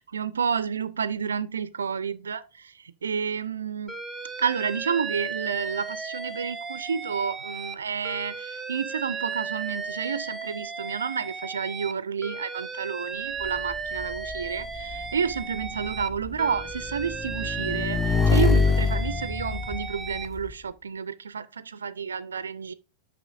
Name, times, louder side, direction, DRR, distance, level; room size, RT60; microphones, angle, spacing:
voice 1, 0.0-3.9 4.4-22.7, right 6 dB, 70° right, 0.4 m, -30 dB
Alarm, 3.9-7.7 8.0-11.9 12.2-16.1 16.4-20.3, right 5 dB, 10° right, 0.7 m, -35 dB
Motorcycle / Engine, 13.4-20.5, left 4 dB, 15° left, 0.3 m, -26 dB
9.1 x 6.1 x 2.5 m
figure-of-eight pair, 90°, 0 cm